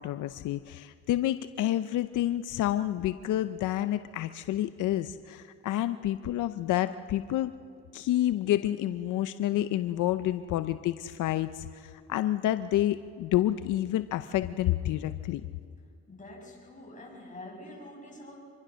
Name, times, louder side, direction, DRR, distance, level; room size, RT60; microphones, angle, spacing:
voice 1, 0.0-7.5 7.9-15.4, left 13 dB, 80° left, 11 dB, 0.7 m, -29 dB
voice 2, 16.1-18.4, left 1 dB, 25° left, -1 dB, 7.5 m, -46 dB
26.0 x 22.5 x 6.4 m, 2.2 s
cardioid pair, 90°, 30 cm